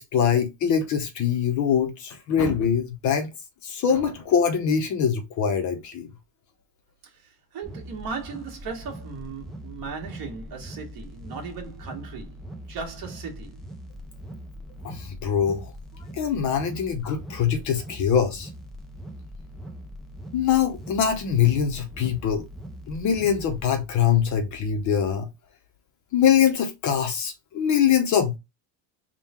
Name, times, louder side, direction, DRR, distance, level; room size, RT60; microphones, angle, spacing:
voice 1, 0.0-3.3 3.6-6.1 14.8-15.7 16.1-18.5 20.3-22.5 22.9-25.3 26.1-28.4, left 8 dB, 40° left, 0.7 m, -23 dB
voice 2, 7.1-12.4 12.7-13.6, right 5 dB, 45° right, 1.5 m, -37 dB
sound 1, 7.6-23.6, equal, ahead, 0.3 m, -41 dB
3.7 x 2.2 x 4.2 m
cardioid pair, 155°, 47 cm